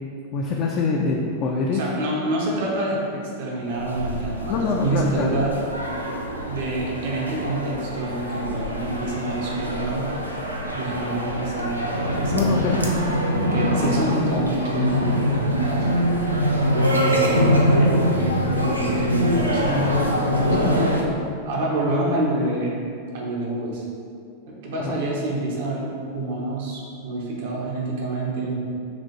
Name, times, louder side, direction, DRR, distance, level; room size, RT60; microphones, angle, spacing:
voice 1, 0.3-1.8 4.5-5.3 12.3-12.8 20.5-21.1 24.8-25.0, left 4 dB, 40° left, -1 dB, 0.4 m, -24 dB
voice 2, 1.7-5.5 6.5-10.2 10.7-12.7 13.4-15.9 16.5-20.7 21.4-22.7 23.1-23.8 24.5-28.6, right 2 dB, 55° right, -3 dB, 0.8 m, -27 dB
sound 1, 3.7-21.0, equal, 85° right, 0.4 m, -23 dB
5.9 x 2.5 x 3.0 m, 2.3 s
figure-of-eight pair, 90°, 0 cm